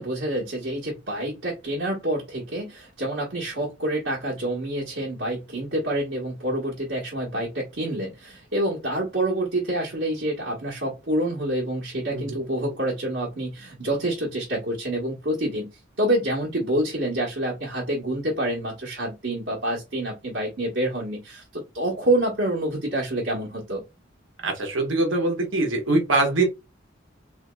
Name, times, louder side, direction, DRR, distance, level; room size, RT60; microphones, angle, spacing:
voice 1, 0.0-15.7 16.0-23.8, right 1 dB, 65° right, 1.2 m, -27 dB
voice 2, 24.4-26.4, right 2 dB, 85° right, 1.2 m, -23 dB
4.0 x 2.8 x 2.3 m
head